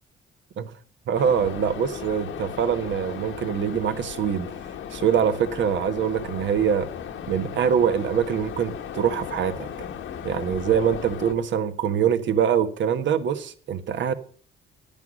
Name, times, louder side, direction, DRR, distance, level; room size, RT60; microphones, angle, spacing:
sound 1, 1.1-11.3, left 8 dB, 85° left, 1.5 m, -36 dB
voice 1, 1.1-4.5 4.9-6.9 7.3-9.7 10.2-14.1, right 8 dB, 70° right, 1.4 m, -24 dB
10.5 x 10.5 x 6.3 m
cardioid pair, 90°, 20 cm